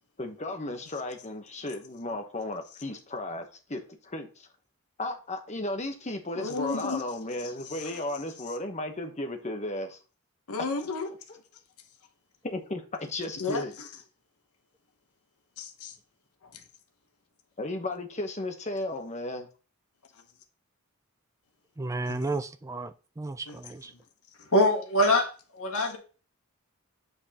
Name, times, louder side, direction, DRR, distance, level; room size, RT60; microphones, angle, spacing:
voice 1, 0.2-4.5 5.0-10.0 12.4-13.7 17.6-19.5, left 2 dB, 30° left, 0.9 m, -34 dB
voice 2, 6.3-8.6 10.5-11.6 13.4-14.0 15.6-16.0 16.4-16.6 20.1-20.2 22.0-22.2 23.5-24.0 25.7-25.9, left 3 dB, 85° left, 0.9 m, -36 dB
voice 3, 21.8-23.9, right 3 dB, 15° right, 0.3 m, -33 dB
voice 4, 24.5-25.3 25.5-26.0, left 1 dB, 65° left, 1.6 m, -23 dB
8.6 x 5.2 x 2.9 m
head